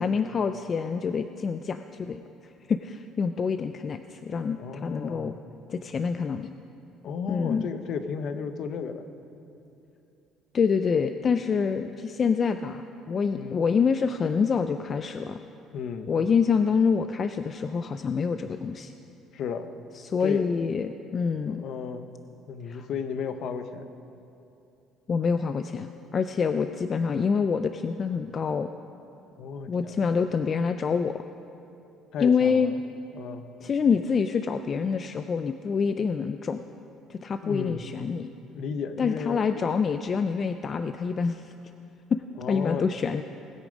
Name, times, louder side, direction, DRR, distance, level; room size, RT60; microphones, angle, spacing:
voice 1, 0.0-2.2 2.7-5.3 5.7-6.5 7.3-7.7 10.5-15.4 16.1-18.9 20.0-21.7 22.7-22.9 25.1-28.7 29.7-31.2 32.2-32.7 33.6-36.6 37.1-38.3 39.0-41.5 42.1-42.2 42.5-43.2, left 5 dB, 30° left, 9 dB, 0.3 m, -26 dB
voice 2, 4.5-5.4 7.0-9.1 13.3-13.6 15.7-16.1 19.3-19.7 20.2-20.6 21.5-22.1 22.5-23.9 29.4-30.0 32.1-32.7 33.1-33.4 37.4-37.8 38.5-39.4 42.4-43.1, left 6 dB, 55° left, 9 dB, 0.8 m, -34 dB
19.5 x 8.5 x 5.2 m, 2.8 s
cardioid pair, 145°, 0 cm